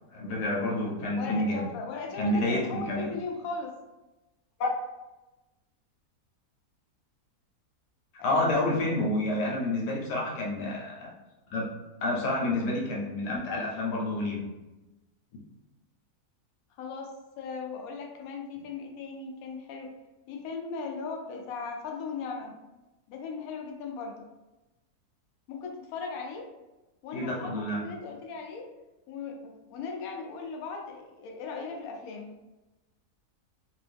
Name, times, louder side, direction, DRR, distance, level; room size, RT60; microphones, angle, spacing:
voice 1, 0.1-1.7 2.2-3.1 4.6-4.7 8.2-11.1 11.5-11.7 12.0-14.5 27.1-27.8, left 1 dB, 85° left, -3 dB, 1.4 m, -29 dB
voice 2, 1.1-3.8 8.2-8.5 16.8-19.9 20.3-22.6 23.1-24.3 25.5-26.5 27.0-28.7 29.1-32.4, left 4 dB, 70° left, 2 dB, 1.0 m, -38 dB
3.0 x 2.6 x 3.4 m, 1.0 s
omnidirectional pair, 1.7 m